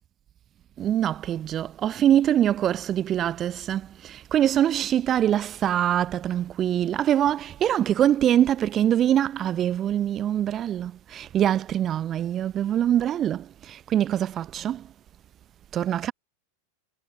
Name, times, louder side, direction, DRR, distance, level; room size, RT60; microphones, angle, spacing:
voice 1, 0.8-14.9 15.7-16.1, right 11 dB, 30° right, 0.8 m, -24 dB
figure-of-eight pair, 90°, 0 cm